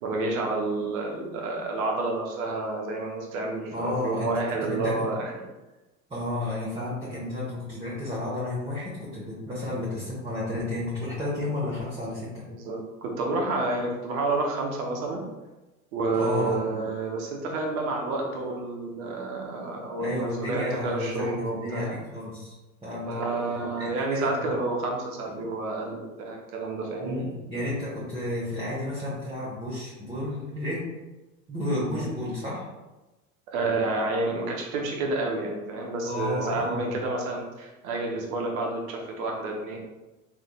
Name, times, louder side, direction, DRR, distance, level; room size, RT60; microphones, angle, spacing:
voice 1, 0.0-5.3 12.5-15.2 15.9-22.0 23.1-27.2 31.9-32.1 33.5-39.8, right 2 dB, 70° right, 0 dB, 1.0 m, -29 dB
voice 2, 3.7-5.1 6.1-12.5 16.2-16.6 20.0-22.6 22.8-23.1 23.8-24.5 27.0-30.8 31.5-32.6 36.0-36.9, left 1 dB, 15° right, -8 dB, 1.1 m, -32 dB
3.6 x 3.4 x 2.3 m, 1.1 s
hypercardioid pair, 85°, 43 cm